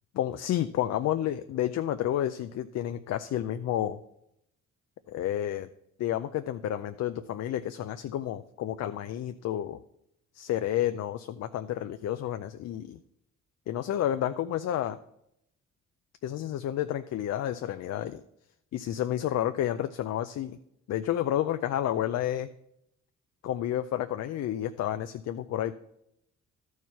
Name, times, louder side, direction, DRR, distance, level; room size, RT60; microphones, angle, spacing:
voice 1, 0.1-4.0 5.1-5.7 6.0-9.8 10.3-13.0 13.7-15.0 16.2-18.2 18.7-20.6 20.9-22.5 23.4-25.8, left 11 dB, 60° left, 9 dB, 0.5 m, -30 dB
12.0 x 4.7 x 5.5 m, 0.78 s
cardioid pair, 90°, 30 cm